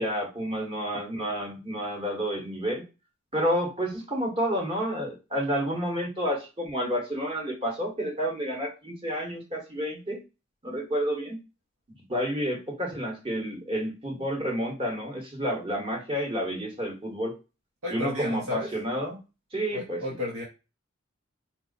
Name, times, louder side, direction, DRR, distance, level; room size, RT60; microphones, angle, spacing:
voice 1, 0.0-2.8 3.3-10.2 10.6-11.4 12.1-17.3 17.9-19.2 19.5-20.0, equal, 25° right, 1 dB, 1.2 m, -30 dB
voice 2, 17.8-18.7 19.7-20.4, left 2 dB, 75° right, -4 dB, 1.0 m, -32 dB
4.3 x 2.3 x 3.9 m, 0.29 s
head